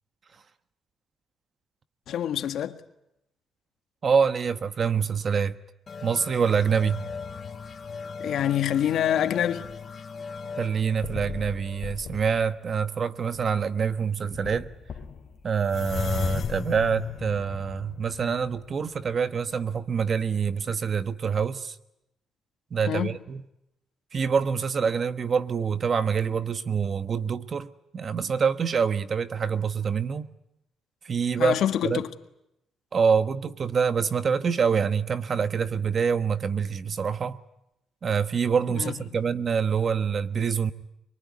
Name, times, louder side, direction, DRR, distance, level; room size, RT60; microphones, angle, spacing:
voice 1, 2.1-2.8 8.2-9.7 22.9-23.2 31.4-32.1 38.7-39.2, left 10 dB, 75° left, 1.6 m, -26 dB
voice 2, 4.0-5.6 6.0-7.0 10.6-14.7 15.4-21.7 22.7-23.4 24.1-30.3 31.0-31.6 31.8-32.0 32.9-37.4 38.0-40.7, right 6 dB, 45° right, 1.2 m, -26 dB
sound 1, 5.9-13.1, left 5 dB, 40° left, 2.0 m, -40 dB
sound 2, 6.6-8.7 9.3-9.9 10.4-10.5 11.0-12.6 13.4-13.6 14.0-14.1 14.3-19.4 19.7-19.8, left 7 dB, 55° left, 2.7 m, -37 dB
24.5 x 23.0 x 9.7 m
cardioid pair, 90°, 0 cm